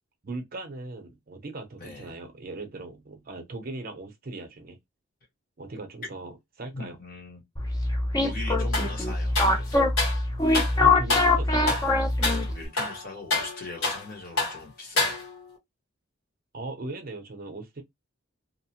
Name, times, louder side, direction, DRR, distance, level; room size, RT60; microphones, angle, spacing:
voice 1, 0.2-4.8 5.6-6.3 6.6-7.0 10.8-11.8 16.5-17.8, right 2 dB, 45° right, 0.6 m, -38 dB
voice 2, 1.8-2.1 6.7-7.4 8.2-9.8 12.2-15.2, left 2 dB, 45° left, 1.0 m, -41 dB
sound 1, 7.6-12.7, left 2 dB, 20° left, 0.4 m, -24 dB
sound 2, 8.7-9.0 9.3-10.2 10.5-10.8 11.1-11.4 11.7-11.9 12.2-12.4 12.8-14.1 14.4-14.6 15.0-15.5, left 2 dB, 80° left, 1.2 m, -28 dB
2.7 x 2.0 x 2.8 m
head